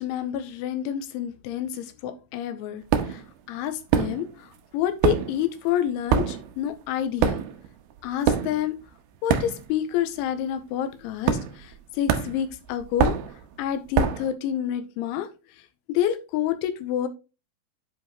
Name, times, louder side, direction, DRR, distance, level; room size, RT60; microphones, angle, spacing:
voice 1, 0.0-3.2 3.5-7.4 8.0-8.8 9.2-13.2 13.6-15.3 15.9-17.1, left 10 dB, 90° left, 3.2 m, -28 dB
sound 1, 2.9-3.3 3.9-4.6 4.8-9.9 10.2-10.5 11.3-11.8 12.1-14.3, right 8 dB, 85° right, 2.1 m, -25 dB
10.5 x 4.7 x 3.0 m
omnidirectional pair, 5.5 m